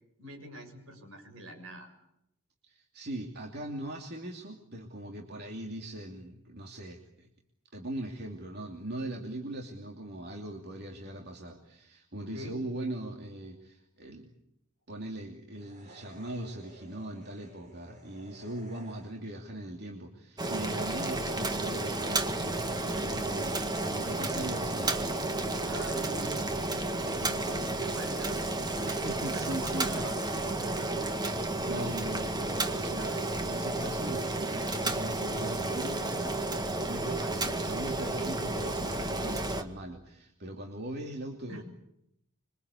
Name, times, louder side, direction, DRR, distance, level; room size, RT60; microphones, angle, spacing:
voice 1, 0.2-1.9 12.2-12.5 25.3-28.9 29.3-30.2 30.5-31.1 41.5-41.6, right 1 dB, 70° right, 4 dB, 7.0 m, -44 dB
voice 2, 2.6-7.3 7.7-14.3 14.9-25.3 28.9-30.1 31.6-36.3 36.6-41.6, right 1 dB, 50° right, 2 dB, 2.8 m, -40 dB
sound 1, 15.5-19.4, equal, 35° right, 7.4 m, -55 dB
Boiling, 20.4-39.6, right 2 dB, 20° right, 1.9 m, -32 dB
26.0 x 24.0 x 8.4 m, 0.81 s
head